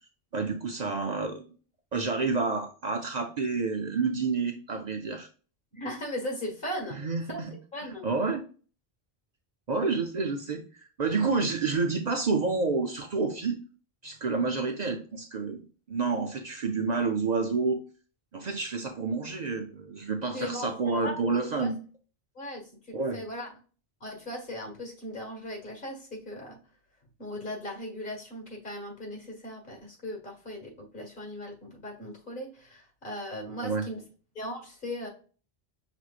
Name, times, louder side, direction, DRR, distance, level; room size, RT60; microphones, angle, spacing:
voice 1, 0.3-1.5 1.9-5.3 6.9-7.5 7.8-8.4 9.7-13.6 14.0-17.8 18.3-21.8 22.9-23.2 33.6-33.9, right 4 dB, 50° right, 3 dB, 0.6 m, -29 dB
voice 2, 5.7-7.0 7.3-8.1 20.3-21.7 22.4-23.5 24.0-26.6 27.2-34.0 34.4-35.1, left 1 dB, 55° left, 1 dB, 1.8 m, -38 dB
5.9 x 3.0 x 2.4 m, 0.38 s
omnidirectional pair, 1.0 m